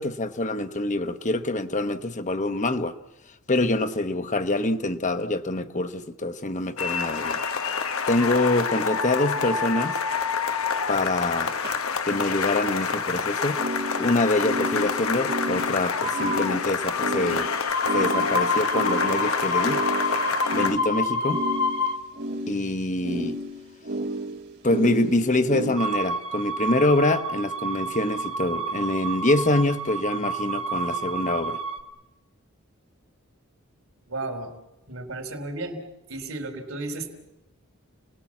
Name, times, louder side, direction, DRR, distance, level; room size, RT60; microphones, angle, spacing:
voice 1, 0.0-2.9 3.5-7.4 8.1-10.0 10.9-11.5 12.1-13.6 14.0-17.5 17.9-19.8 20.5-21.4 22.5-23.4 24.6-31.6, left 2 dB, 35° left, 1.1 m, -25 dB
sound 1, 6.8-20.8, left 5 dB, 85° left, 1.2 m, -27 dB
sound 2, 10.7-10.8 11.6-11.7 13.5-25.8, right 1 dB, 50° right, 2.3 m, -32 dB
sound 3, 17.7-22.0 25.8-31.8, equal, 30° right, 1.4 m, -28 dB
voice 2, 34.1-34.5 34.9-35.8 36.1-37.1, right 2 dB, 70° right, 3.6 m, -33 dB
30.0 x 19.5 x 7.3 m
head